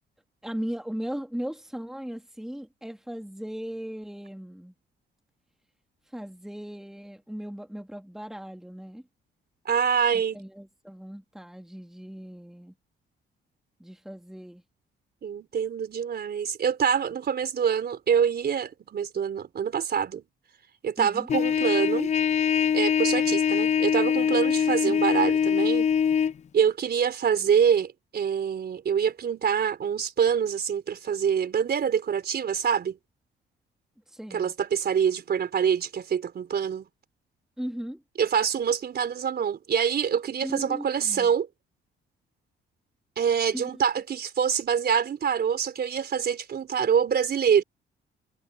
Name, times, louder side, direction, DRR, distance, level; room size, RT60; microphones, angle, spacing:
voice 1, 0.4-4.7 6.1-9.0 10.1-12.7 13.8-14.6 21.0-21.3 24.8-25.0 34.1-34.5 37.6-38.0 40.4-41.3 43.5-43.8, equal, ahead, 2.6 m, -37 dB
voice 2, 9.7-10.4 15.2-20.2 20.8-22.1 22.7-25.9 26.5-33.0 34.3-36.9 38.2-41.5 43.2-47.6, right 7 dB, 55° right, 4.1 m, -25 dB
Trumpet, 21.3-26.3, left 7 dB, 35° left, 0.4 m, -23 dB
cardioid pair, 90°, 20 cm